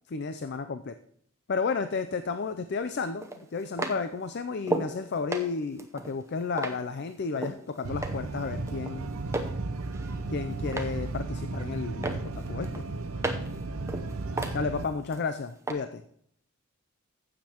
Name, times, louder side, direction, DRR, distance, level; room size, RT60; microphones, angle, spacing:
voice 1, 0.1-0.9 1.5-9.1 10.3-12.8 14.5-16.0, left 4 dB, 45° left, 10 dB, 0.4 m, -32 dB
sound 1, 2.2-2.3 3.2-5.0 5.3-7.6 8.0-8.4 8.7-9.6 9.9-11.0 11.4-11.8 12.0-13.6 13.9-15.2 15.7-15.8, right 2 dB, 15° right, 0.7 m, -34 dB
sound 2, 7.8-14.9, right 3 dB, 70° right, 0.7 m, -34 dB
voice 2, 13.0-14.8, right 1 dB, 65° left, -2 dB, 4.3 m, -54 dB
15.0 x 7.4 x 2.9 m, 0.66 s
head